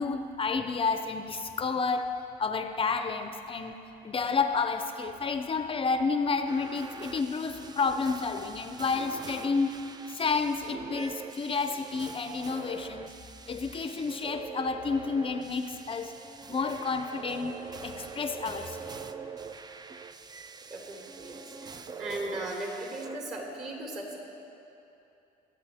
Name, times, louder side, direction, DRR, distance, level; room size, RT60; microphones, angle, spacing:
voice 1, 0.0-3.8 4.0-9.7 10.1-13.1 13.5-16.1 16.5-19.0, left 4 dB, 30° left, 8 dB, 0.5 m, -30 dB
sound 1, 6.5-23.2, right 5 dB, 25° right, 0.4 m, -44 dB
voice 2, 20.7-24.2, right 1 dB, 50° right, -1 dB, 3.5 m, -38 dB
24.0 x 8.8 x 3.5 m, 2.8 s
cardioid pair, 110°, 17 cm